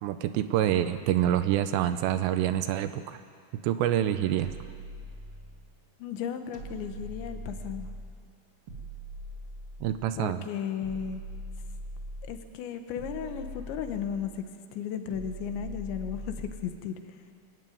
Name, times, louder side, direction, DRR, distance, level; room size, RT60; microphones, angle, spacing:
voice 1, 0.0-3.2 3.6-4.5 9.8-10.4, right 11 dB, 80° right, 10 dB, 2.8 m, -26 dB
sound 1, 4.4-5.7 6.5-8.2 8.7-10.1 10.8-12.4 13.0-14.4 15.1-16.7, right 1 dB, 40° right, 2.2 m, -41 dB
voice 2, 6.0-7.9 10.2-11.2 12.3-14.4 14.7-17.0, left 8 dB, 80° left, 7 dB, 3.5 m, -35 dB
24.5 x 14.0 x 9.3 m, 2.2 s
omnidirectional pair, 5.2 m